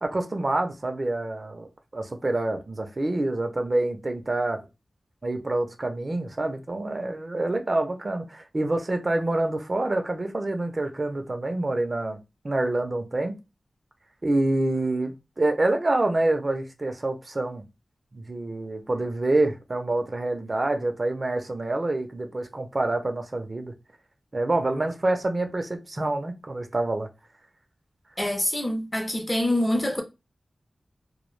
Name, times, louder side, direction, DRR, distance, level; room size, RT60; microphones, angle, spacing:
voice 1, 0.0-1.7 1.9-4.6 5.2-12.2 12.4-13.3 14.2-15.1 15.4-17.6 18.1-23.7 24.3-27.1, right 2 dB, 40° right, 0.4 m, -27 dB
voice 2, 28.2-30.0, left 1 dB, 20° left, 0.5 m, -25 dB
2.2 x 2.0 x 3.1 m
wide cardioid pair, 95°, 0 cm